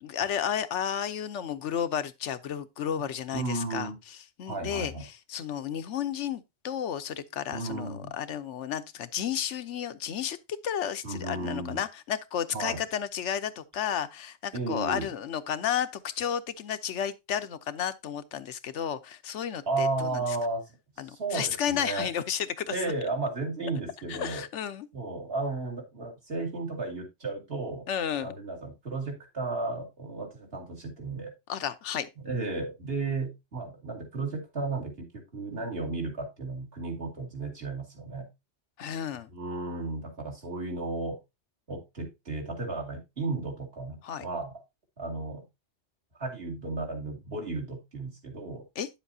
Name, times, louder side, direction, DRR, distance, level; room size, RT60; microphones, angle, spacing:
voice 1, 0.0-10.4 10.6-20.2 21.0-22.7 24.1-24.9 27.9-28.3 31.5-32.1 38.8-39.3 44.0-44.2 48.8-48.9, left 9 dB, 75° left, 1.0 m, -32 dB
voice 2, 3.3-4.0 4.5-5.0 7.5-8.1 11.0-11.8 12.5-12.8 14.5-15.1 19.7-20.6 21.0-22.1 22.7-24.4 24.9-27.9 28.2-31.3 32.2-38.3 39.3-41.2 41.7-44.6 45.0-45.4 46.2-48.6, right 3 dB, 55° right, 2.6 m, -34 dB
9.6 x 7.2 x 2.7 m
omnidirectional pair, 1.2 m